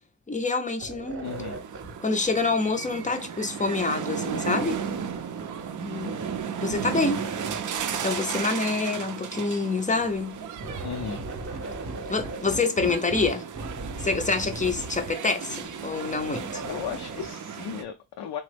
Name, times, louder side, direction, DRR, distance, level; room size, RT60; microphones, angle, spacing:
voice 1, 0.3-1.3 2.0-4.8 5.8-6.2 6.6-7.2 7.9-10.4 12.1-13.4 14.0-16.6, left 3 dB, 20° left, 0.5 m, -27 dB
sound 1, 0.8-3.6 4.2-6.4 6.7-8.5 9.5-17.3, right 2 dB, 30° right, 0.8 m, -39 dB
voice 2, 1.2-1.6 10.8-11.2 16.6-18.4, left 8 dB, 75° left, 0.5 m, -35 dB
sound 2, 1.2-17.8, right 7 dB, 50° right, 0.4 m, -35 dB
2.9 x 2.0 x 3.3 m
cardioid pair, 70°, 42 cm